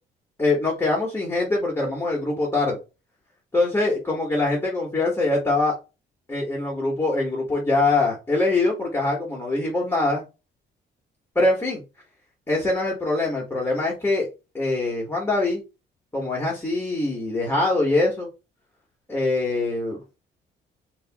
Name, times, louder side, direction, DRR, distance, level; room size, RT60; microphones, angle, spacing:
voice 1, 0.4-2.8 3.5-5.7 6.3-10.2 11.3-11.8 12.5-14.3 14.5-15.6 16.1-18.3 19.1-20.0, left 2 dB, 10° left, -2 dB, 1.6 m, -23 dB
3.3 x 3.0 x 3.6 m, 0.29 s
cardioid pair, 90°, 20 cm